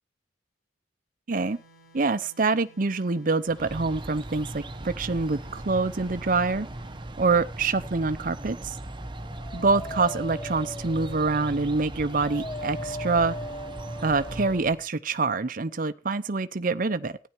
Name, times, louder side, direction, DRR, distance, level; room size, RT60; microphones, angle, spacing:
sound 1, 1.3-7.1, right 1 dB, 50° left, 4.7 m, -56 dB
voice 1, 1.3-1.6 1.9-6.7 7.2-8.8 9.5-13.4 14.0-17.2, right 3 dB, 50° right, 11 dB, 0.7 m, -26 dB
sound 2, 3.5-14.9, right 1 dB, 25° right, 1.0 m, -38 dB
Dog, 9.0-14.6, left 1 dB, 25° left, 0.6 m, -39 dB
15.0 x 10.0 x 4.5 m, 0.35 s
head